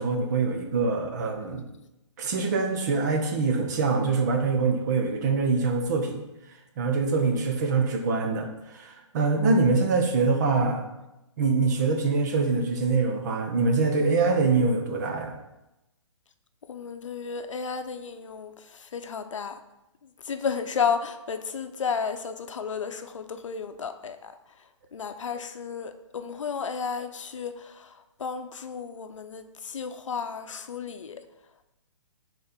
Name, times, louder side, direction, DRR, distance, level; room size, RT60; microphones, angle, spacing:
voice 1, 0.0-1.7 2.2-6.2 6.8-10.9 11.4-15.3, right 4 dB, 35° right, 3 dB, 0.9 m, -24 dB
voice 2, 16.7-18.5 18.9-19.6 20.3-24.3 24.9-27.9 28.2-31.2, left 6 dB, 85° left, 9 dB, 0.6 m, -32 dB
4.5 x 4.1 x 5.1 m, 0.93 s
hypercardioid pair, 160°, 16 cm